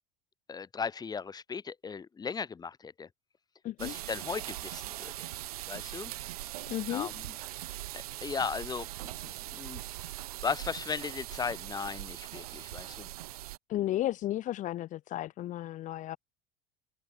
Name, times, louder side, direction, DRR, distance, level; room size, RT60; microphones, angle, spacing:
voice 1, 0.5-3.1 3.8-5.3 5.7-6.1 6.4-6.5 6.9-7.4 7.9-10.1 10.4-13.1, left 5 dB, 20° left, 2.4 m, -37 dB
sound 1, 3.8-13.6, right 16 dB, 85° right, 2.9 m, -41 dB
voice 2, 6.7-7.1 13.7-16.2, left 14 dB, 45° left, 1.3 m, -33 dB
open air
supercardioid pair, 110°, 19 cm